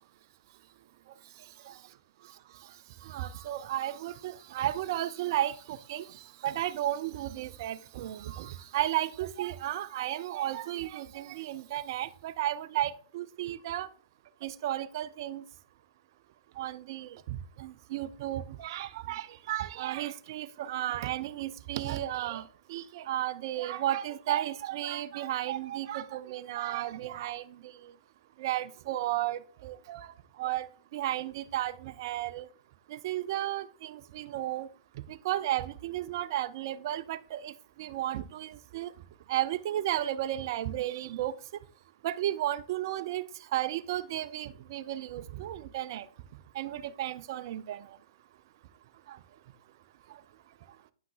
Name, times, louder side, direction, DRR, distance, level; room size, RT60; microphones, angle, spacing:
voice 1, 3.0-6.1 6.4-13.9 14.4-15.4 16.6-27.4 27.8-27.9 28.4-30.1 30.4-30.7 30.9-32.5 32.9-34.7 35.1-38.9 39.3-41.3 42.0-43.2 43.5-46.1 46.6-47.8 49.1-49.2, right 13 dB, 50° right, 0.5 m, -33 dB
9.0 x 5.8 x 2.4 m
hypercardioid pair, 120°, 3 cm